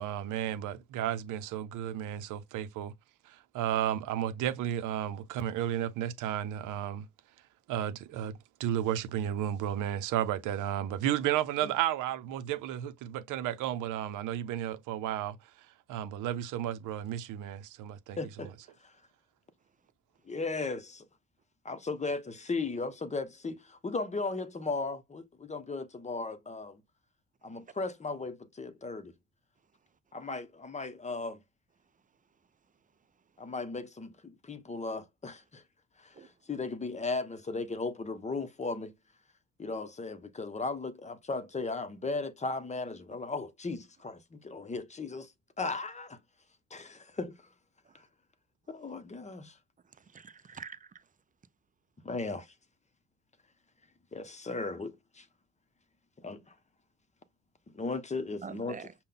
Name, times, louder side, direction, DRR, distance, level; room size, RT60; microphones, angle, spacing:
voice 1, 0.0-2.9 3.3-7.1 7.7-18.2, right 11 dB, 85° right, 0.6 m, -33 dB
voice 2, 18.2-18.5 20.3-21.0 21.6-26.8 27.4-29.1 30.1-31.4 33.4-35.6 36.0-38.9 39.6-45.3 45.6-46.2 46.7-47.4 48.7-49.5 52.0-52.5 54.1-55.2 56.2-56.4 57.7-58.8, left 3 dB, 25° left, 0.7 m, -36 dB
voice 3, 49.8-51.1 58.4-58.9, right 6 dB, 25° right, 0.4 m, -46 dB
5.4 x 2.2 x 3.7 m
cardioid pair, 90°, 30 cm